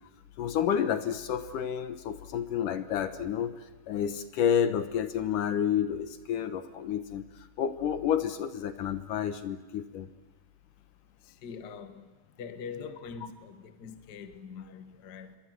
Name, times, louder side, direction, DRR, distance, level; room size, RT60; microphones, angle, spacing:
voice 1, 0.4-3.5 3.9-7.3 7.6-10.1, left 9 dB, 70° left, 2.5 m, -30 dB
voice 2, 11.2-12.1 12.4-15.4, left 6 dB, 40° left, 1.5 m, -43 dB
28.5 x 23.5 x 7.8 m
omnidirectional pair, 4.2 m